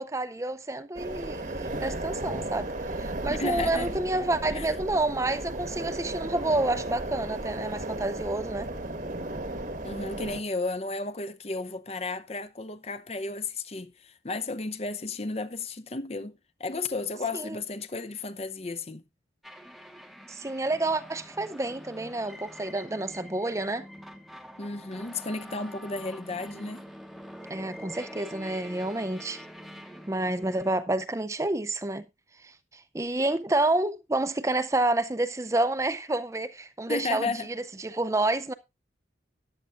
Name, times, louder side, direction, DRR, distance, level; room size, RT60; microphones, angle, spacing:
voice 1, 0.0-2.7 3.0-8.7 17.3-17.6 20.3-23.9 27.5-29.4 30.1-32.0 32.4-32.5 32.9-38.5, right 2 dB, 15° right, 0.5 m, -29 dB
sound 1, 0.9-10.4, right 1 dB, 45° right, 1.3 m, -35 dB
voice 2, 3.3-3.9 4.5-4.7 9.8-16.3 16.6-19.0 24.6-26.9 36.9-37.5, left 3 dB, 35° left, 0.7 m, -33 dB
sound 2, 19.4-30.7, equal, ahead, 0.9 m, -45 dB
14.0 x 10.5 x 2.5 m
head